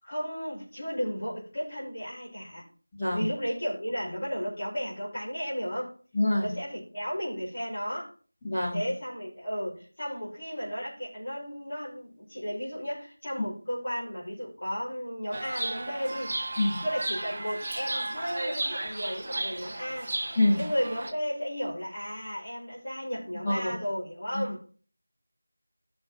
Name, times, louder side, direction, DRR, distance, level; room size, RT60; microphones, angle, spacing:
voice 1, 0.0-2.6 3.1-5.9 6.4-8.1 8.7-16.4 16.8-20.1 20.6-24.6, equal, 30° left, -8 dB, 5.2 m, -34 dB
voice 2, 6.1-6.5 8.4-8.9 16.6-16.8 20.4-20.6 23.4-23.7 24.3-24.4, left 1 dB, 15° left, -10 dB, 1.9 m, -25 dB
Chirp tweet, 15.3-21.1, right 2 dB, 30° right, 0.9 m, -34 dB
15.0 x 6.4 x 3.2 m, 0.39 s
figure-of-eight pair, 170°, 0 cm